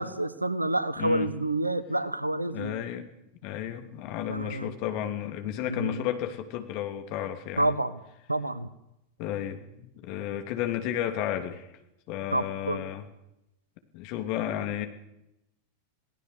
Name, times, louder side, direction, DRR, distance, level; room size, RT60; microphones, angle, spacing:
voice 1, 0.0-2.7 4.3-4.7 5.7-6.0 7.6-8.0 8.3-8.7 12.3-12.9, right 1 dB, 85° right, 17 dB, 1.3 m, -28 dB
voice 2, 1.0-1.3 2.5-3.1 3.4-7.7 9.2-11.7 12.1-13.1 13.9-14.9, left 11 dB, 45° left, 6 dB, 2.8 m, -32 dB
27.0 x 18.0 x 6.7 m, 0.87 s
figure-of-eight pair, 90°, 0 cm